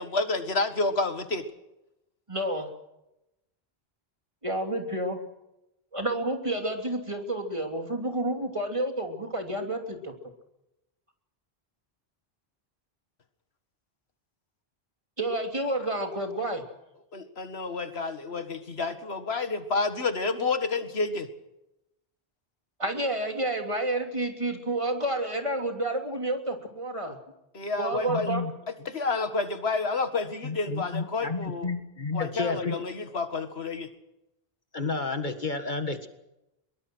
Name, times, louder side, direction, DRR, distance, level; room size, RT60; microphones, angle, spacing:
voice 1, 0.0-1.5 17.1-21.3 27.5-28.3 28.9-31.7 32.1-33.9, left 3 dB, 85° left, 9 dB, 2.1 m, -29 dB
voice 2, 2.3-2.7 4.4-5.2 5.9-10.1 15.2-16.6 22.8-27.2 27.8-28.4, right 1 dB, 30° right, 4 dB, 3.1 m, -30 dB
voice 3, 27.9-28.5 30.4-32.8 34.7-36.1, left 4 dB, 50° left, 8 dB, 2.0 m, -31 dB
23.0 x 22.0 x 6.3 m, 0.91 s
omnidirectional pair, 1.0 m